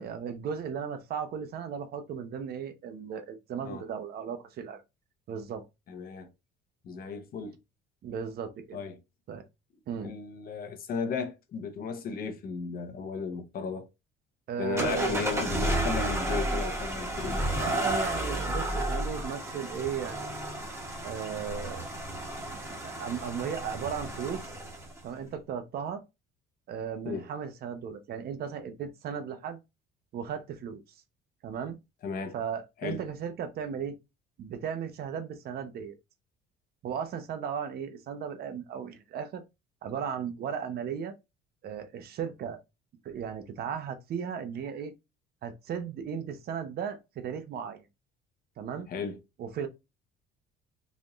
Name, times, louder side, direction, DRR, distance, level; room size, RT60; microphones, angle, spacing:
voice 1, 0.0-4.8 5.3-5.6 8.0-8.8 9.3-9.4 9.9-10.1 14.5-15.3 17.6-20.3 21.0-21.9 22.8-24.5 25.0-26.0 26.7-29.6 30.1-30.8 31.4-31.8 32.3-34.0 34.4-36.0 36.8-39.4 39.8-41.1 41.6-42.6 43.0-44.9 45.4-47.8 48.6-48.9 49.4-49.7, right 7 dB, 50° right, 0.7 m, -36 dB
voice 2, 5.9-6.3 6.8-7.6 8.7-9.0 10.0-13.9 14.6-17.4 27.0-27.3 32.0-32.3 32.8-33.0 48.9-49.2, left 5 dB, 45° left, 0.8 m, -35 dB
sound 1, 14.8-25.0, right 1 dB, 15° right, 1.1 m, -32 dB
4.1 x 2.6 x 3.0 m
cardioid pair, 140°, 21 cm